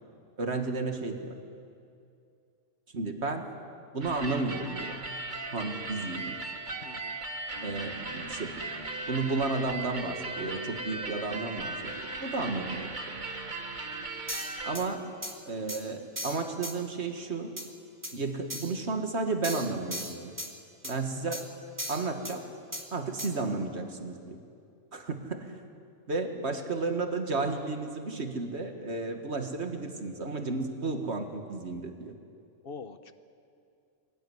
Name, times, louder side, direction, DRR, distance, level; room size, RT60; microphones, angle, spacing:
voice 1, 0.4-1.4 2.9-3.5 3.9-5.0 5.5-6.4 7.6-8.6 9.1-13.1 14.6-15.1 15.5-17.5 18.1-20.3 20.9-21.5 21.9-22.4 22.9-24.4 24.9-25.6 26.1-32.1, right 3 dB, 50° right, 5 dB, 2.1 m, -33 dB
sound 1, 4.0-14.8, right 2 dB, 35° right, 1.6 m, -38 dB
voice 2, 5.7-6.1 6.8-7.2 20.8-21.1 32.6-33.1, left 4 dB, 45° left, 10 dB, 1.1 m, -45 dB
sound 2, 14.3-14.9 15.2-15.3 15.7-15.8 16.2-16.7 17.6-17.7 18.0-18.1 18.5-18.7 19.4-20.5 20.8-21.0 21.3-21.4 21.8-22.4 22.7-22.8 23.2-23.3, equal, 15° right, 2.1 m, -37 dB
23.5 x 18.5 x 9.6 m, 2.5 s
omnidirectional pair, 1.4 m